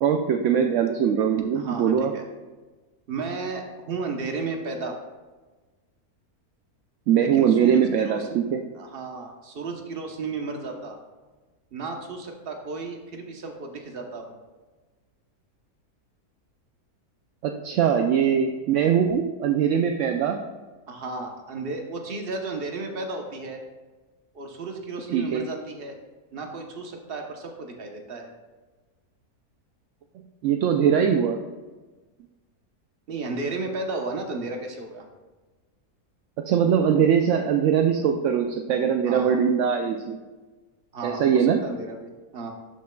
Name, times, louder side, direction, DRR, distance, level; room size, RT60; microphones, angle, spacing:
voice 1, 0.0-2.1 7.1-8.6 17.4-20.4 25.1-25.4 30.4-31.4 36.5-40.2 41.0-41.6, right 8 dB, 70° right, 4 dB, 0.7 m, -21 dB
voice 2, 1.5-2.2 3.1-5.0 7.2-8.4 8.7-11.0 11.7-14.4 17.9-18.1 20.9-23.6 24.3-26.0 26.3-28.3 33.1-35.1 39.0-39.4 40.9-42.5, right 3 dB, 40° right, 3 dB, 1.0 m, -33 dB
12.5 x 6.2 x 2.3 m, 1.3 s
omnidirectional pair, 1.6 m